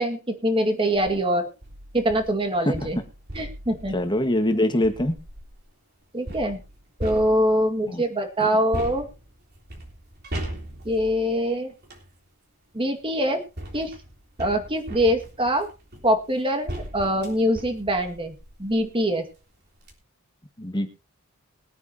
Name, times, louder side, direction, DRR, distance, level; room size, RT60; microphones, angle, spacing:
voice 1, 0.0-1.5 1.9-3.0 3.4-3.9 6.1-6.6 7.0-9.1 10.8-11.7 12.7-13.4 13.7-13.9 14.4-15.7 16.0-18.3 18.6-19.2, equal, 25° right, 4 dB, 2.1 m, -23 dB
sound 1, 0.8-1.1 1.6-5.7 6.3-7.8 8.7-12.1 13.0-19.0 19.4-19.5 19.8-19.9, right 1 dB, 50° right, 3.7 m, -39 dB
voice 2, 3.9-5.2 7.9-8.0 8.4-8.5 20.6-20.9, left 1 dB, 20° left, 6 dB, 1.7 m, -23 dB
22.0 x 9.3 x 2.9 m, 0.31 s
head